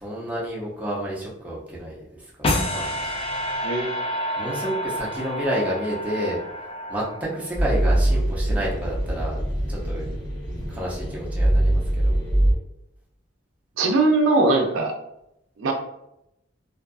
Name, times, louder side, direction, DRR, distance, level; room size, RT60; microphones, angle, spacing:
voice 1, 0.0-2.0 2.7-3.2 4.4-6.4 6.9-9.4 9.7-10.1 10.7-12.1, equal, 10° right, -5 dB, 0.6 m, -30 dB
sound 1, 2.4-7.6, left 1 dB, 30° left, 0.3 m, -29 dB
voice 2, 3.6-4.0 13.8-14.9 15.6-15.7, right 2 dB, 85° right, 3 dB, 0.4 m, -20 dB
sound 2, 7.5-12.5, right 1 dB, 70° left, 1.2 m, -23 dB
2.6 x 2.4 x 2.3 m, 0.82 s
head